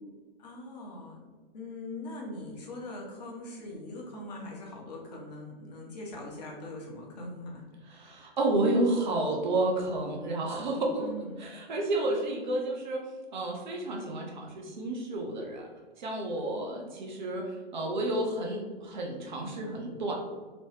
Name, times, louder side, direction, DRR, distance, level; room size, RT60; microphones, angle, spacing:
voice 1, 0.4-1.3 1.5-7.6 10.9-11.4 16.4-16.9, left 1 dB, 40° left, -2 dB, 0.8 m, -42 dB
voice 2, 7.9-11.1 11.4-13.0 13.3-15.7 16.0-20.1, right 2 dB, 50° right, 0 dB, 0.7 m, -31 dB
3.0 x 2.2 x 3.3 m, 1.4 s
figure-of-eight pair, 115°, 30 cm